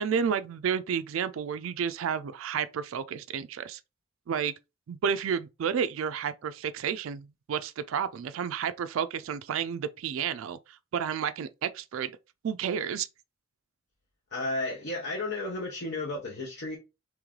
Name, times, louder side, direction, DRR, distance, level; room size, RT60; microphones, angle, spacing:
voice 1, 0.0-3.8 4.3-4.5 4.9-10.6 10.9-12.1 12.4-13.1, right 7 dB, 75° right, 0.3 m, -31 dB
voice 2, 14.3-16.8, left 2 dB, 60° left, 0.9 m, -33 dB
3.1 x 3.1 x 3.7 m
head